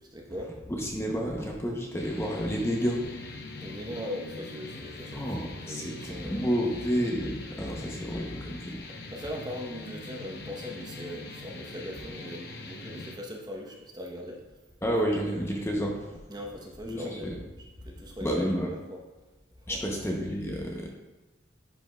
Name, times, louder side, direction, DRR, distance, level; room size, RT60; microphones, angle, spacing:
voice 1, 0.0-0.6 3.6-6.7 7.7-8.1 8.9-14.4 16.3-17.5 17.8-19.0 19.6-20.0, left 1 dB, 20° right, 0 dB, 0.8 m, -40 dB
voice 2, 0.7-3.0 5.1-8.8 14.8-16.2 16.9-17.4 18.2-18.7 19.7-20.9, equal, 15° left, 0 dB, 0.6 m, -30 dB
sound 1, 2.0-13.1, left 3 dB, 55° left, 0.8 m, -43 dB
10.5 x 5.1 x 2.2 m, 1.2 s
head